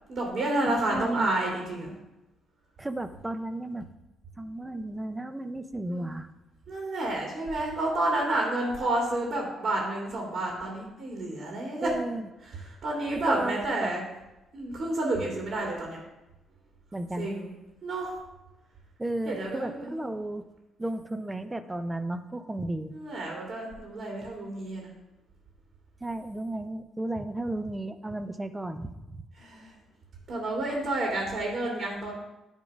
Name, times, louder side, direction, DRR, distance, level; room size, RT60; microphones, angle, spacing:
voice 1, 0.1-1.9 5.9-6.2 6.7-11.9 12.5-14.0 14.5-16.0 17.2-17.5 17.8-18.2 19.3-20.0 22.9-24.9 29.4-29.8 30.3-32.1, right 2 dB, 55° right, -2 dB, 2.2 m, -30 dB
voice 2, 0.6-1.3 2.8-3.9 4.4-6.3 11.8-12.2 13.1-13.9 16.9-17.3 19.0-20.4 20.8-22.9 26.0-29.3, right 1 dB, 15° right, 10 dB, 0.6 m, -34 dB
10.5 x 3.7 x 5.3 m, 1.0 s
cardioid pair, 85°, 0 cm